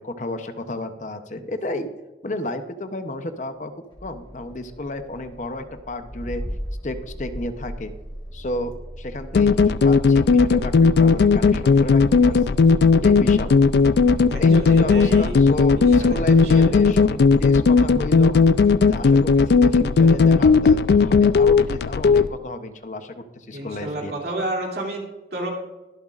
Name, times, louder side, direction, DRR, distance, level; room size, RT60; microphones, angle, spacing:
voice 1, 0.0-1.9 2.2-3.7 4.0-6.4 6.8-7.9 8.3-8.7 9.0-12.6 13.0-13.5 14.4-18.4 18.8-24.1, left 1 dB, 45° left, 8 dB, 0.7 m, -32 dB
Engine starting, 3.9-18.0, equal, 25° left, 1.6 m, -37 dB
sound 1, 9.4-22.3, left 4 dB, 65° left, 0.3 m, -16 dB
voice 2, 14.2-15.3 15.6-16.7 23.5-25.0 25.3-25.5, right 1 dB, 65° right, -1 dB, 2.6 m, -31 dB
22.5 x 7.9 x 2.5 m, 1.1 s
head